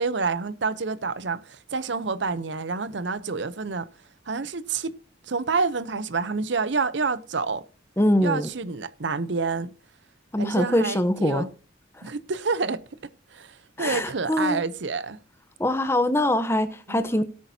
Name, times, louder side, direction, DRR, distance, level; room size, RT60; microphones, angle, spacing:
voice 1, 0.0-3.9 4.3-4.9 5.2-7.6 8.2-9.7 10.4-11.5 12.0-12.8 13.3-15.2 16.9-17.2, right 4 dB, 70° right, 0.7 m, -28 dB
voice 2, 8.0-8.5 10.3-11.5 13.8-14.6 15.6-17.2, left 1 dB, 15° left, 0.9 m, -23 dB
17.5 x 8.5 x 2.8 m
head